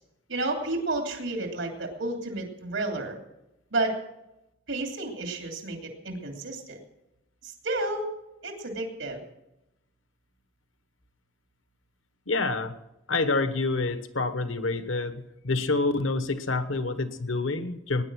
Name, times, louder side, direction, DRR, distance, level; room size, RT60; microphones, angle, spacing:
voice 1, 0.3-3.2 3.7-4.0 4.7-6.8 7.4-8.1 8.4-9.2, right 2 dB, 90° right, 3 dB, 2.9 m, -31 dB
voice 2, 12.3-12.7 13.1-18.0, left 3 dB, 85° left, 11 dB, 1.2 m, -27 dB
19.0 x 10.0 x 6.2 m, 0.91 s
head